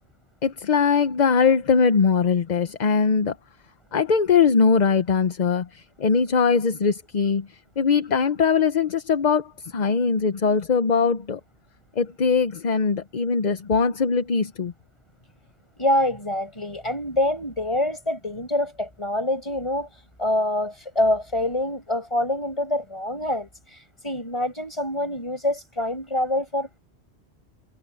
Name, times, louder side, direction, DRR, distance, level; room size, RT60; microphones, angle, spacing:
voice 1, 0.4-3.4 3.9-11.4 12.0-14.7, left 5 dB, 45° left, 0.8 m, -21 dB
voice 2, 15.8-19.9 20.2-23.5 24.0-26.8, left 1 dB, 25° left, 6.8 m, -25 dB
omnidirectional pair, 1.1 m